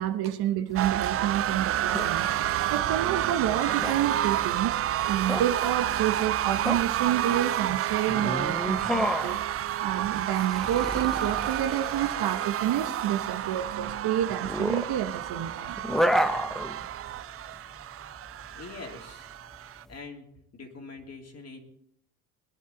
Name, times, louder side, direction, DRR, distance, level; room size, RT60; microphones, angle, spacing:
voice 1, 0.0-2.3 2.7-4.8 5.1-9.4 9.8-15.8, right 11 dB, 55° right, 8 dB, 1.2 m, -29 dB
sound 1, 0.7-19.9, equal, ahead, 0.9 m, -32 dB
sound 2, 0.8-19.8, right 12 dB, 30° right, 0.4 m, -30 dB
voice 2, 18.5-19.3 19.9-20.3 20.5-21.6, left 4 dB, 35° left, 2 dB, 3.0 m, -43 dB
21.0 x 10.0 x 3.9 m, 0.67 s
supercardioid pair, 80°, 45 cm